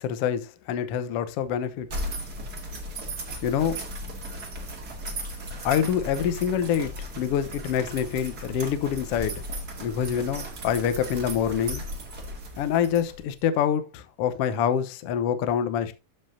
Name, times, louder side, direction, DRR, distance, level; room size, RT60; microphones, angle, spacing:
voice 1, 0.0-1.9 3.4-3.8 5.6-9.4 9.8-11.8 12.6-16.0, left 8 dB, 80° left, 1.3 m, -26 dB
sound 1, 1.9-13.4, equal, 35° right, 2.0 m, -36 dB
13.0 x 5.4 x 2.6 m
omnidirectional pair, 3.9 m